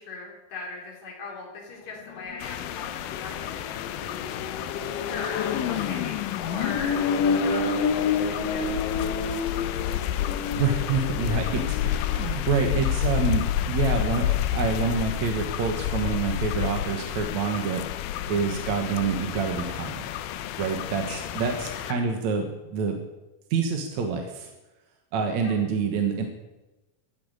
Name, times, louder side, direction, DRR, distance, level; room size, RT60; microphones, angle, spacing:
voice 1, 0.0-4.1 4.9-7.0 7.3-9.2 20.9-21.3 25.4-25.6, left 3 dB, 50° left, -1 dB, 4.9 m, -40 dB
Accelerating revving vroom, 2.0-12.4, left 5 dB, 75° left, 2.7 m, -29 dB
sound 1, 2.4-21.9, left 11 dB, 90° left, 2.6 m, -30 dB
voice 2, 10.5-17.8 18.3-20.0 20.6-23.0 23.5-24.5 25.1-26.2, right 5 dB, 60° right, 4 dB, 2.4 m, -27 dB
14.5 x 10.5 x 8.8 m, 1.1 s
omnidirectional pair, 4.1 m